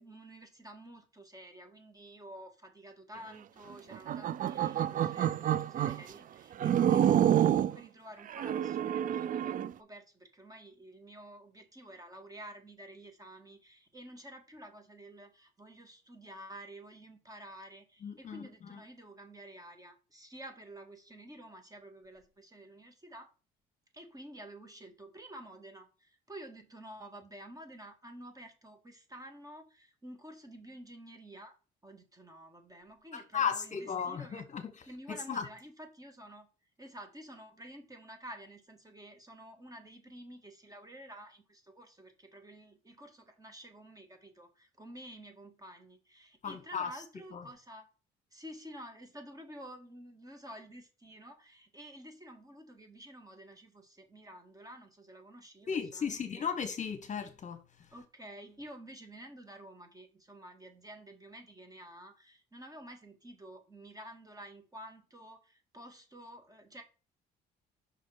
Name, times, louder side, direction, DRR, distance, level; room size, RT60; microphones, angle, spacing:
voice 1, 0.0-23.3 23.9-31.6 31.8-34.5 34.9-36.5 36.8-47.9 48.3-56.5 57.9-66.8, right 1 dB, 20° right, 1.8 m, -50 dB
sound 1, 3.9-6.0 6.6-7.8 8.3-9.7, right 10 dB, 45° right, 0.4 m, -28 dB
voice 2, 18.0-18.4 33.1-34.6 35.1-35.4 46.4-46.9 47.3-47.4 55.7-57.6, left 7 dB, 40° left, 1.1 m, -35 dB
5.7 x 4.1 x 4.9 m
supercardioid pair, 75°, 19 cm